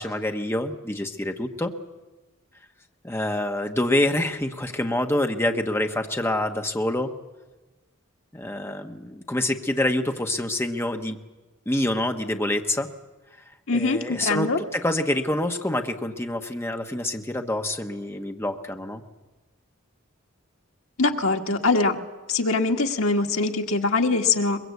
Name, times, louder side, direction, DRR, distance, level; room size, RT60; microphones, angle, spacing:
voice 1, 0.0-1.7 3.0-7.1 8.3-11.2 11.7-12.9 13.7-19.0, left 1 dB, 10° left, 5 dB, 1.2 m, -26 dB
voice 2, 13.7-14.6 21.0-22.0 22.3-24.6, left 3 dB, 80° left, 3 dB, 1.8 m, -23 dB
22.5 x 21.5 x 8.2 m, 1.2 s
head